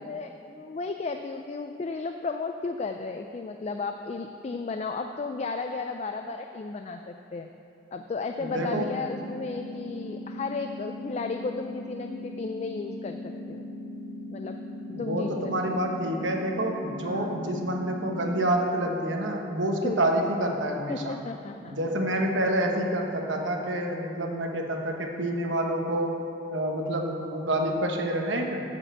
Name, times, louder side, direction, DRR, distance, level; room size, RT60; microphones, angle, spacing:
voice 1, 0.0-7.5 7.9-13.6 14.3-14.6 14.9-15.3 15.7-15.8 17.0-17.4 19.8-20.0 20.9-21.7, left 4 dB, 35° left, 5 dB, 0.3 m, -34 dB
voice 2, 8.4-8.9 14.9-21.2 21.7-26.2 26.5-28.6, right 1 dB, 85° right, 2 dB, 1.1 m, -28 dB
sound 1, 8.5-18.5, left 1 dB, 60° left, 1.1 m, -39 dB
7.5 x 6.6 x 7.5 m, 2.7 s
head